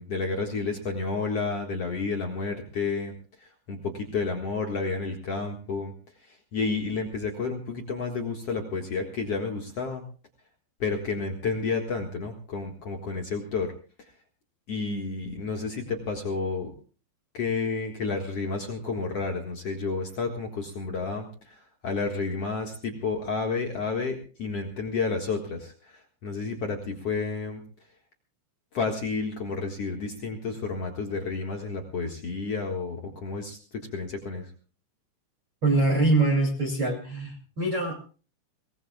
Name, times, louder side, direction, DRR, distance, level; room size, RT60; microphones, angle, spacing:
voice 1, 0.0-5.9 6.2-10.0 10.8-13.7 14.0-14.1 14.7-16.7 17.3-27.6 28.7-34.5, left 4 dB, 60° left, 1 dB, 1.6 m, -31 dB
voice 2, 35.6-38.0, right 2 dB, 35° right, 0 dB, 2.7 m, -24 dB
23.5 x 18.5 x 2.3 m, 0.37 s
omnidirectional pair, 5.5 m